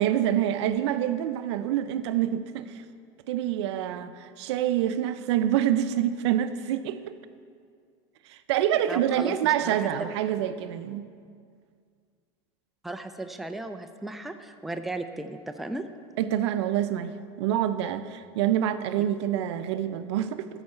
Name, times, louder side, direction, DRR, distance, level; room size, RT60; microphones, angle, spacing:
voice 1, 0.0-2.7 3.3-7.0 8.3-11.1 16.2-17.1 17.4-20.5, right 11 dB, 85° right, 12 dB, 0.5 m, -26 dB
voice 2, 8.9-10.1 12.8-15.9, right 2 dB, ahead, 7 dB, 0.3 m, -36 dB
12.5 x 4.7 x 4.3 m, 2.2 s
supercardioid pair, 135°, 14 cm